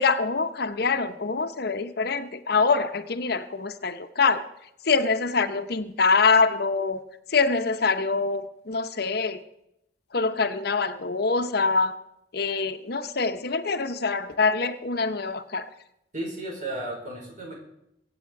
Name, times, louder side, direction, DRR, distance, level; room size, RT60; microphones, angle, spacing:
voice 1, 0.0-4.5 4.9-7.0 7.3-9.4 10.1-11.9 12.3-15.7, left 4 dB, 60° left, 9 dB, 0.9 m, -24 dB
voice 2, 16.1-17.5, right 1 dB, 45° right, -1 dB, 5.3 m, -34 dB
23.0 x 8.1 x 4.7 m, 0.81 s
head